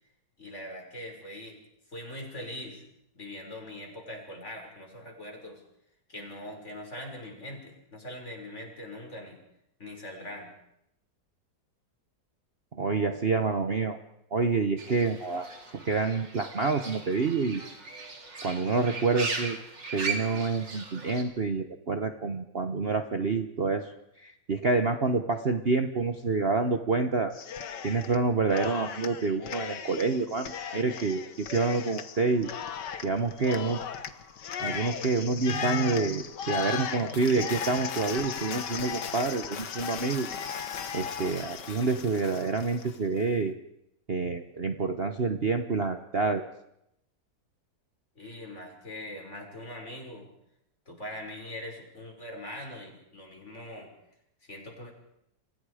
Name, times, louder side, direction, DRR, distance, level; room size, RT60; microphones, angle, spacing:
voice 1, 0.4-1.6 1.9-2.8 3.1-5.6 6.1-9.4 9.8-10.5 48.2-50.3 50.9-53.9 54.4-54.9, left 1 dB, 40° left, 1 dB, 6.3 m, -42 dB
voice 2, 12.7-14.0 14.3-15.5 15.7-17.6 18.4-19.6 19.9-23.9 24.2-27.3 27.8-32.5 33.0-33.8 34.6-40.3 40.9-43.5 44.1-46.4, right 4 dB, 40° right, 7 dB, 1.2 m, -28 dB
Fowl / Bird, 14.8-21.2, right 4 dB, 90° right, 4.0 m, -38 dB
Cheering, 27.3-28.2 28.5-43.0, left 7 dB, 75° left, 1.9 m, -36 dB
30.0 x 25.5 x 5.0 m, 0.79 s
omnidirectional pair, 1.9 m